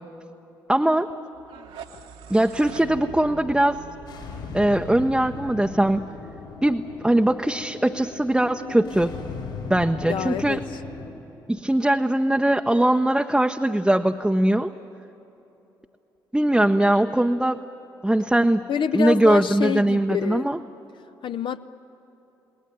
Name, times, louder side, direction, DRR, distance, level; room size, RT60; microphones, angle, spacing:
voice 1, 0.7-1.1 2.3-3.8 4.5-6.1 6.6-9.1 9.7-10.6 11.5-14.7 16.3-17.6 18.0-18.7 18.9-20.6, right 1 dB, 5° right, 4 dB, 0.8 m, -21 dB
sound 1, 1.4-6.3, right 6 dB, 60° right, 1.4 m, -42 dB
sound 2, 4.1-11.1, left 4 dB, 75° left, 3.9 m, -37 dB
voice 2, 10.1-10.8 18.7-20.5 21.2-21.7, left 8 dB, 45° left, 10 dB, 0.6 m, -27 dB
29.5 x 19.5 x 9.1 m, 3.0 s
figure-of-eight pair, 40°, 11 cm